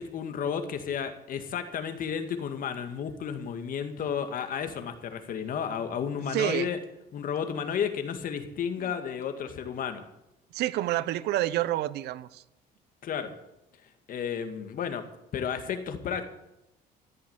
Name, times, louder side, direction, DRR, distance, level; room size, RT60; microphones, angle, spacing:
voice 1, 0.0-6.8 7.1-10.0 13.0-13.3 14.1-15.1 15.3-16.3, left 7 dB, 55° left, 2.0 m, -32 dB
voice 2, 6.3-6.7 10.5-12.4, right 14 dB, 80° right, 0.7 m, -28 dB
14.5 x 8.6 x 8.9 m
cardioid pair, 110°, 17 cm